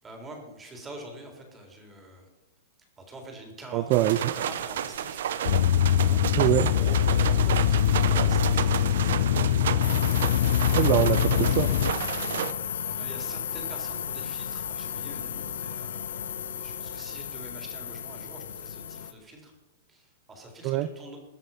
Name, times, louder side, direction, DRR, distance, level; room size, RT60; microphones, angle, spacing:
voice 1, 0.0-2.3 3.0-5.2 6.0-9.9 12.0-12.2 12.8-19.6 19.9-21.2, right 1 dB, 15° right, 2 dB, 3.7 m, -46 dB
voice 2, 3.7-4.2 6.4-6.7 10.7-11.7 20.6-20.9, right 15 dB, 40° right, 13 dB, 0.5 m, -24 dB
sound 1, 3.9-12.5, right 9 dB, 70° right, 0.8 m, -31 dB
sound 2, 5.5-11.9, left 10 dB, 65° left, 0.7 m, -23 dB
sound 3, 9.8-19.1, left 8 dB, 85° left, 1.3 m, -34 dB
21.5 x 7.4 x 5.7 m, 1.1 s
hypercardioid pair, 145°, 0 cm